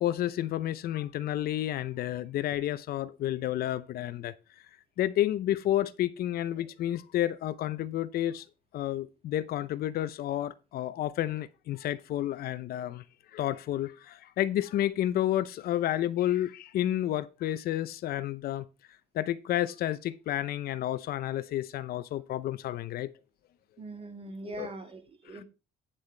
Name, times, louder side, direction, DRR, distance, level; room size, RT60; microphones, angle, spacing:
voice 1, 0.0-4.3 5.0-8.4 8.7-13.0 13.3-18.6 19.1-23.1 24.5-24.7 25.3-25.4, left 13 dB, 65° left, 0.6 m, -30 dB
voice 2, 23.8-25.4, right 2 dB, 35° right, 2.0 m, -42 dB
9.0 x 7.7 x 3.3 m
cardioid pair, 110°, 17 cm